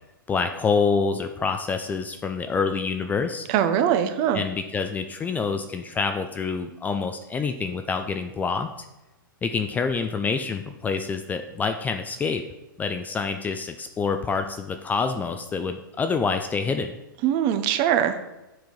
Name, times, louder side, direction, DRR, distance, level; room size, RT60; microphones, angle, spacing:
voice 1, 0.3-3.5 4.3-8.7 9.4-12.4 12.8-16.9, left 5 dB, 15° left, 7 dB, 0.4 m, -27 dB
voice 2, 3.5-4.4 17.2-18.2, right 9 dB, 40° right, 10 dB, 0.8 m, -22 dB
7.7 x 4.5 x 5.3 m, 0.99 s
hypercardioid pair, 130°, 12 cm